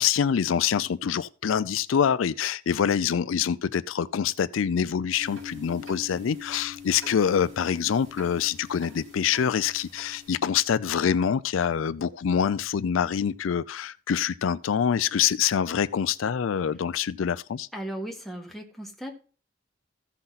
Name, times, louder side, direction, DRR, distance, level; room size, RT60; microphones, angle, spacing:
voice 1, 0.0-17.7, left 8 dB, 85° left, 0.4 m, -25 dB
sound 1, 5.2-10.3, left 5 dB, 75° right, 5.5 m, -44 dB
voice 2, 17.7-19.2, right 1 dB, ahead, 1.6 m, -36 dB
14.5 x 5.8 x 4.0 m
head